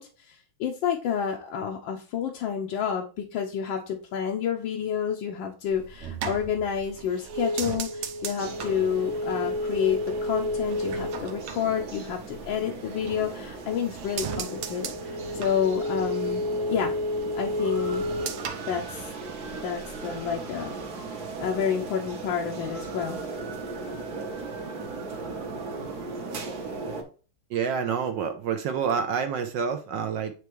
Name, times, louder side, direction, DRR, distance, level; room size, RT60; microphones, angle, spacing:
voice 1, 0.0-16.9 17.3-18.1 18.7-19.1 19.5-20.8 21.4-23.2, left 8 dB, 70° left, 1 dB, 1.3 m, -29 dB
sound 1, 5.7-12.5 12.9-13.6 13.9-19.6 19.8-20.3, equal, 90° right, 1.7 m, -32 dB
sound 2, 8.4-27.0, right 3 dB, 50° right, 1.4 m, -38 dB
voice 2, 27.5-30.3, right 6 dB, 70° right, 6 dB, 1.2 m, -28 dB
9.3 x 3.3 x 3.1 m, 0.37 s
omnidirectional pair, 2.4 m